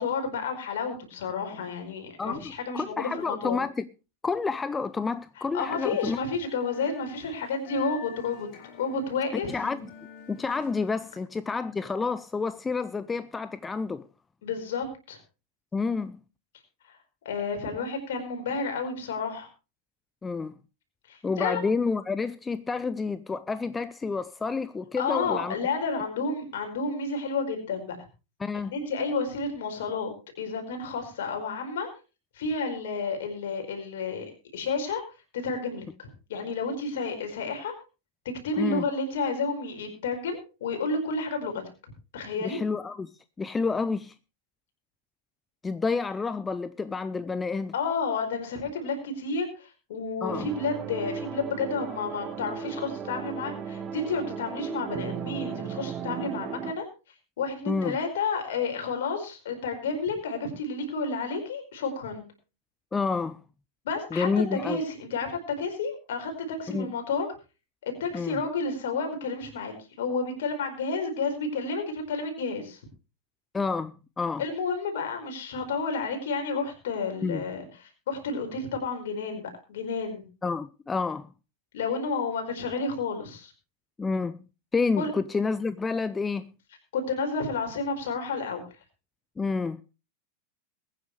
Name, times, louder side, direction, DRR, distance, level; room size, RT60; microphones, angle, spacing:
voice 1, 0.0-3.6 5.4-8.5 8.8-9.6 14.4-15.2 16.9-17.0 17.2-19.5 21.1-21.6 25.0-28.0 28.7-30.1 30.4-31.9 32.3-35.0 35.3-37.7 38.4-41.6 42.1-42.6 47.7-56.9 57.4-62.2 63.8-67.3 67.8-72.8 74.4-80.2 81.7-83.5 85.0-85.1 86.9-88.6, left 4 dB, 55° left, 4.7 m, -31 dB
voice 2, 2.7-3.9 4.2-6.2 9.5-9.8 10.3-14.0 15.7-16.2 20.2-20.6 21.2-25.5 28.4-28.7 38.6-38.8 42.4-43.1 43.4-44.1 45.6-47.7 50.2-50.5 57.7-58.0 62.9-63.4 64.1-64.8 66.7-66.9 68.1-68.4 73.5-74.4 77.2-77.4 80.4-81.3 84.0-84.4 84.7-86.5 89.4-89.8, left 4 dB, 15° left, 0.5 m, -29 dB
sound 1, 5.6-11.2, left 7 dB, 40° left, 3.1 m, -48 dB
sound 2, 50.3-56.7, right 7 dB, 25° right, 1.4 m, -36 dB
22.0 x 9.8 x 3.2 m
figure-of-eight pair, 90°, 0 cm